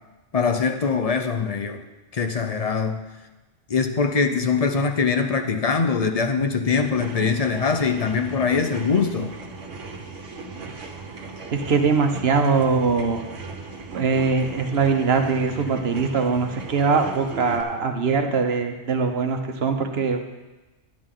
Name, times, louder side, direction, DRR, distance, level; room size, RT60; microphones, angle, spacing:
voice 1, 0.3-1.8 2.1-3.0 3.7-9.3, left 5 dB, 40° left, 6 dB, 0.7 m, -22 dB
sound 1, 6.6-17.6, right 3 dB, 80° right, 1.5 m, -38 dB
voice 2, 11.5-13.2 13.9-20.2, right 5 dB, 60° right, 5 dB, 1.1 m, -22 dB
12.0 x 10.0 x 3.8 m, 1.1 s
omnidirectional pair, 1.3 m